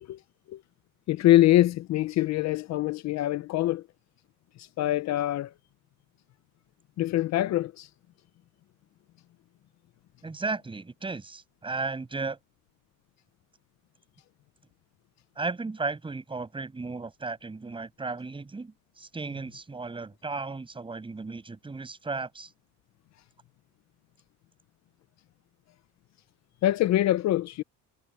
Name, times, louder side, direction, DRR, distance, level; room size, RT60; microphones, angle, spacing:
voice 1, 1.1-3.8 4.6-5.5 7.0-7.9 26.6-27.6, left 14 dB, 55° left, 0.6 m, -24 dB
voice 2, 10.2-12.4 15.4-22.5, right 3 dB, 15° right, 7.1 m, -35 dB
cardioid pair, 165°, 33 cm